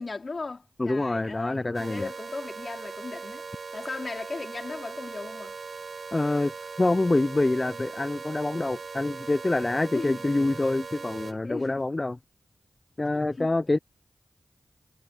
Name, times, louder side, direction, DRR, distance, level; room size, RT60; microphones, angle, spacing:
voice 1, 0.0-3.5 3.7-5.6 9.9-10.5 11.4-11.8 13.1-13.5, left 3 dB, 60° left, 3.4 m, -37 dB
voice 2, 0.8-2.1 6.1-6.5 6.8-12.2 13.0-13.8, left 2 dB, 35° left, 0.5 m, -26 dB
sound 1, 1.7-11.3, right 4 dB, 75° right, 2.7 m, -40 dB
cardioid pair, 40°, 0 cm